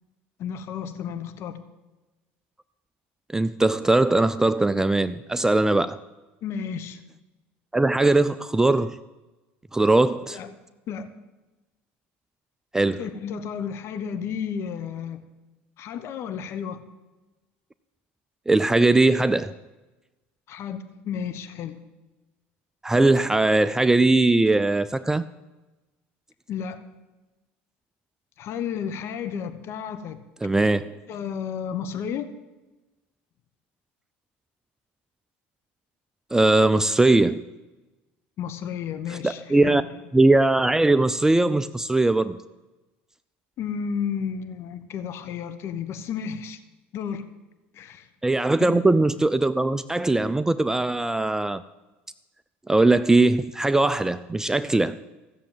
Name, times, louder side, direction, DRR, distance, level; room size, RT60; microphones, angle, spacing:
voice 1, 0.4-1.6 6.4-7.0 10.3-10.5 10.9-11.1 13.0-15.2 15.8-16.8 20.5-21.8 26.5-26.8 28.4-30.2 31.1-32.3 38.4-40.0 43.6-46.6 46.9-47.2 47.7-48.1 48.6-48.8, left 7 dB, 55° left, 12 dB, 1.1 m, -32 dB
voice 2, 3.3-6.0 7.7-9.0 9.7-10.4 12.7-13.0 18.5-19.5 22.8-25.3 30.4-30.9 36.3-37.5 39.1-39.8 40.1-42.4 48.2-51.6 52.7-55.0, right 2 dB, 10° right, 12 dB, 0.4 m, -20 dB
15.0 x 7.2 x 9.0 m, 1.1 s
supercardioid pair, 100°, 5 cm